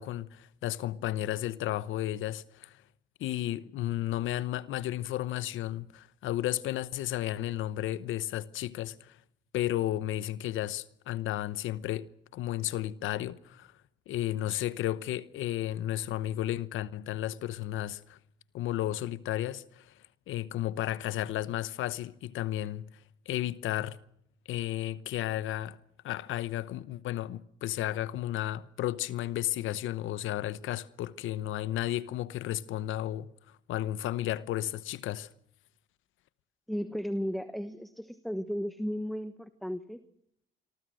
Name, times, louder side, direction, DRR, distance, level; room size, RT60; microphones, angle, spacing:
voice 1, 0.0-2.8 3.2-9.2 9.5-13.7 14.1-18.2 18.5-20.0 20.3-24.0 24.5-25.8 26.0-33.3 33.7-35.3, left 13 dB, 85° left, 0.9 m, -33 dB
voice 2, 36.7-40.0, equal, ahead, 1.2 m, -34 dB
26.0 x 23.5 x 6.3 m
cardioid pair, 90°, 20 cm